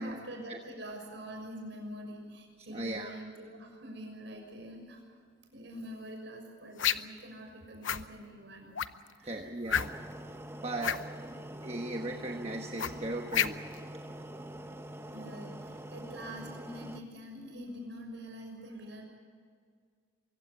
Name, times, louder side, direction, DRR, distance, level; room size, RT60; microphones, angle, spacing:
voice 1, 0.0-5.0 5.5-8.7 9.2-9.5 15.1-19.0, equal, 70° right, 2 dB, 6.3 m, -45 dB
voice 2, 2.7-3.1 9.2-9.9 10.6-11.0 11.6-13.6, right 2 dB, 30° right, 2 dB, 1.3 m, -37 dB
sound 1, 6.8-7.2 7.8-8.1 8.8-9.1 9.7-10.1 10.8-11.0 12.8-13.8, left 9 dB, 85° left, 0.8 m, -30 dB
sound 2, 9.7-17.0, right 1 dB, 15° right, 0.8 m, -45 dB
24.0 x 16.0 x 9.8 m, 2.1 s
head